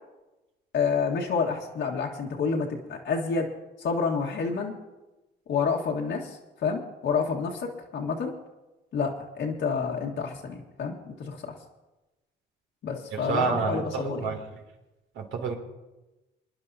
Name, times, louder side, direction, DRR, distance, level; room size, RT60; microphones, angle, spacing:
voice 1, 0.7-3.5 3.8-4.7 5.5-8.3 8.9-11.5 12.8-14.3, left 5 dB, 70° left, -1 dB, 1.6 m, -29 dB
voice 2, 13.1-14.4 15.2-15.5, right 4 dB, 75° right, 2 dB, 2.7 m, -28 dB
27.0 x 10.5 x 2.7 m, 1.1 s
cardioid pair, 90°, 20 cm